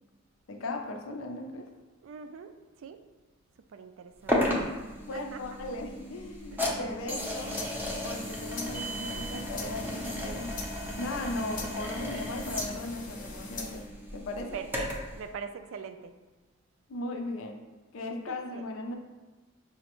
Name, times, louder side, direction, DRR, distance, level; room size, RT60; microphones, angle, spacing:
voice 1, 0.5-1.7 5.1-7.6 8.0-10.5 11.0-14.6 16.9-17.6 17.9-18.9, left 2 dB, 80° left, 3 dB, 0.5 m, -37 dB
voice 2, 2.0-2.5 2.8-3.0 3.7-4.6 5.1-5.4 6.5-6.8 14.5-16.1 18.3-18.7, right 6 dB, 70° right, 9 dB, 0.3 m, -42 dB
sound 1, 4.3-15.2, equal, 10° right, 0.5 m, -35 dB
sound 2, 7.2-13.9, left 3 dB, 45° left, 0.6 m, -42 dB
5.6 x 2.1 x 3.0 m, 1.2 s
head